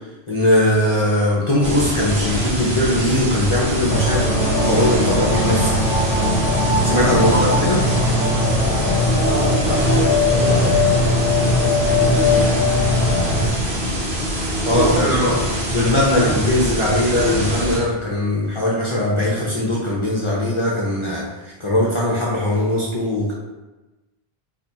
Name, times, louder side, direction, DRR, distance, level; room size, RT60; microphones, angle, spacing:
voice 1, 0.3-5.8 6.8-7.8 14.7-15.3 15.7-23.3, left 1 dB, 40° left, -6 dB, 0.5 m, -20 dB
sound 1, 1.6-17.8, equal, 90° right, 1.1 m, -24 dB
sound 2, 3.9-13.5, left 2 dB, 65° left, 0.7 m, -19 dB
voice 2, 7.1-7.5 9.1-12.6 14.8-15.4 15.7-16.4, right 1 dB, 55° right, -4 dB, 0.8 m, -27 dB
2.6 x 2.3 x 3.9 m, 1.1 s
omnidirectional pair, 1.0 m